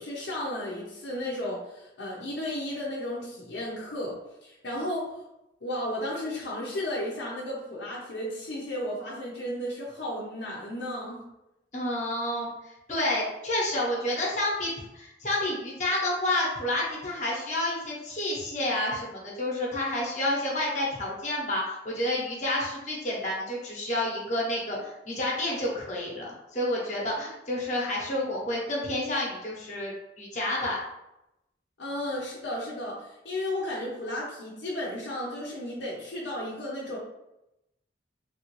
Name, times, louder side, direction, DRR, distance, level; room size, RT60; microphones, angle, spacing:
voice 1, 0.0-4.2 4.4-5.1 5.6-11.2 31.8-37.0, left 1 dB, 75° left, -5 dB, 0.6 m, -34 dB
voice 2, 11.7-12.5 12.9-30.8, left 1 dB, 40° left, -4 dB, 0.9 m, -29 dB
3.3 x 2.5 x 3.1 m, 0.89 s
head